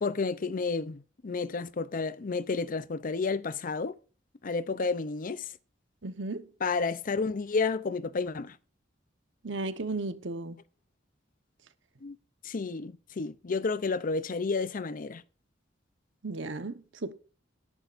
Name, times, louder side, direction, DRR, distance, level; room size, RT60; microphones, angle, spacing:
voice 1, 0.0-4.0 4.4-5.5 6.6-8.6 12.0-12.2 12.4-15.2, left 4 dB, 45° left, 0.5 m, -31 dB
voice 2, 6.0-6.5 9.4-10.6 16.2-17.1, right 3 dB, 75° right, 1.1 m, -35 dB
19.0 x 11.0 x 2.5 m
head